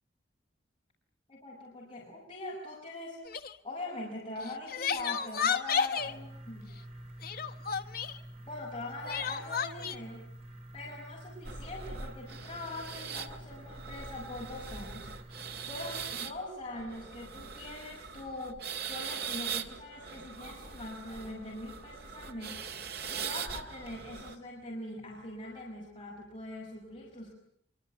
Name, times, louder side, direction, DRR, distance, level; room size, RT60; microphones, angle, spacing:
voice 1, 1.3-3.3 3.6-6.8 8.5-10.3 10.7-15.1 15.6-22.7 23.1-27.3, left 2 dB, 25° left, -3 dB, 6.9 m, -42 dB
Crying sobbing, 3.3-3.6 4.4-6.1 7.2-8.2 9.1-10.0, left 7 dB, 50° left, 1.3 m, -32 dB
sound 1, 6.0-16.2, right 1 dB, 35° right, 6.0 m, -49 dB
sound 2, 11.4-24.4, right 6 dB, 55° right, 2.1 m, -41 dB
25.5 x 24.5 x 9.3 m, 0.64 s
head